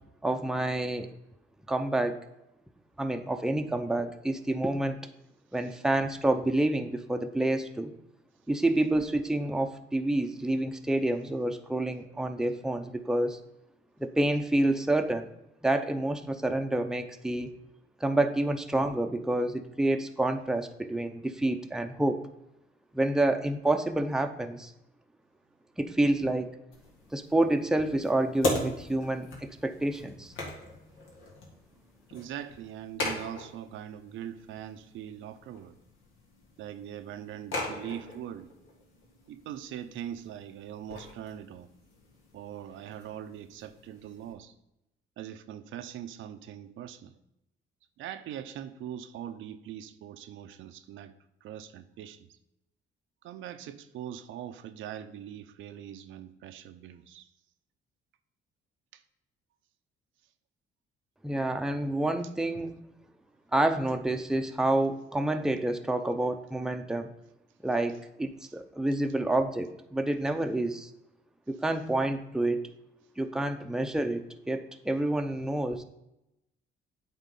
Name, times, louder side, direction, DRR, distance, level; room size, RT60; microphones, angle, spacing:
voice 1, 0.2-1.1 1.7-2.2 3.0-5.0 5.5-7.9 8.5-13.4 14.0-15.3 15.6-17.5 18.0-22.2 22.9-24.7 25.8-26.5 27.1-30.3 61.2-62.8 63.5-67.1 67.6-70.9 71.5-72.7 73.2-75.8, right 1 dB, 5° right, 6 dB, 0.6 m, -28 dB
sound 1, 26.7-44.3, left 2 dB, 85° left, 1.9 m, -40 dB
voice 2, 32.1-35.8 36.6-38.5 39.3-41.7 42.3-44.5 45.2-47.1 48.0-51.1 51.4-52.3 53.2-57.3, right 10 dB, 80° right, 9 dB, 0.6 m, -42 dB
8.5 x 3.6 x 5.3 m, 0.87 s
cardioid pair, 90°, 20 cm